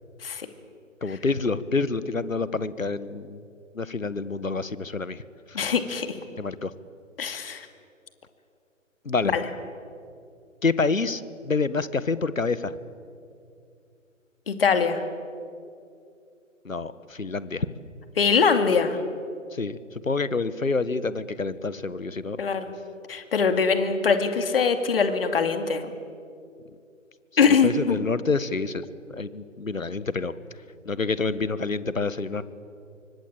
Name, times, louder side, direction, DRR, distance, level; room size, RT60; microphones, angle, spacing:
voice 1, 1.0-3.4 3.7-5.2 5.5-5.6 6.4-6.7 9.0-9.4 10.6-12.7 16.6-17.7 19.5-22.4 27.4-28.8 29.1-30.3 30.8-32.4, left 4 dB, 75° left, 16 dB, 1.5 m, -27 dB
voice 2, 5.5-6.1 7.2-7.7 9.3-9.4 14.5-15.0 18.2-19.0 22.4-22.7 23.1-25.9 27.4-28.0, left 5 dB, 45° left, 8 dB, 2.5 m, -22 dB
27.5 x 24.0 x 8.7 m, 2.4 s
figure-of-eight pair, 140°, 40 cm